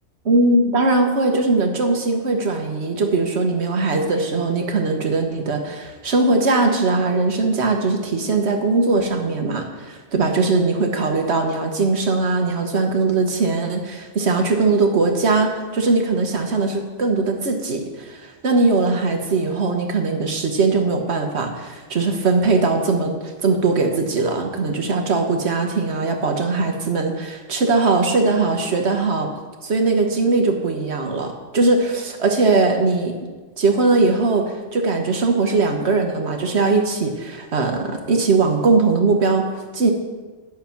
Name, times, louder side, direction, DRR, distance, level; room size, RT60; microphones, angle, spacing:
voice 1, 0.2-29.3 29.6-33.1 33.6-39.5 39.7-39.9, right 3 dB, 65° right, 4 dB, 1.5 m, -20 dB
10.5 x 6.5 x 5.8 m, 1.3 s
omnidirectional pair, 1.2 m